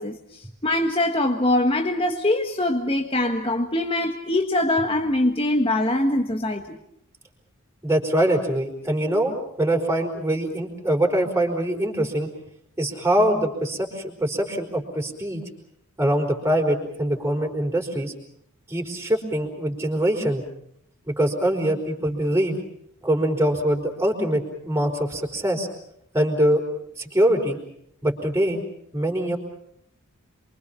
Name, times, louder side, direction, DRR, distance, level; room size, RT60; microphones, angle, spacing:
voice 1, 0.0-6.8, left 1 dB, 25° left, 1.5 m, -23 dB
voice 2, 7.8-12.3 12.8-15.4 16.0-18.1 18.7-20.4 21.1-22.6 23.0-25.7 26.1-26.6 27.0-27.6 28.0-28.6 28.9-29.4, right 1 dB, 10° right, 4.6 m, -23 dB
28.5 x 24.0 x 5.8 m
head